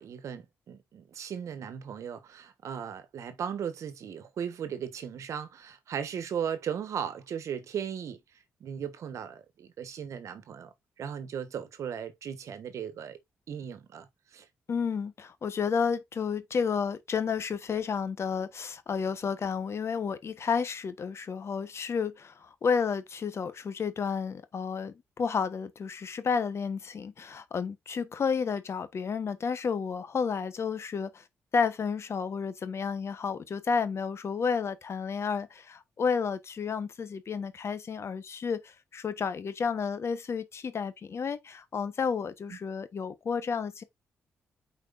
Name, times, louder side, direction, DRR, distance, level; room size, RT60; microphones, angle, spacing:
voice 1, 0.0-8.2 8.6-13.2 13.5-14.1 14.3-14.4 42.5-42.6, right 8 dB, 70° right, 1.2 m, -37 dB
voice 2, 14.7-31.2 31.5-43.8, left 6 dB, 55° left, 1.1 m, -31 dB
8.4 x 4.5 x 2.5 m
supercardioid pair, 55°, 5 cm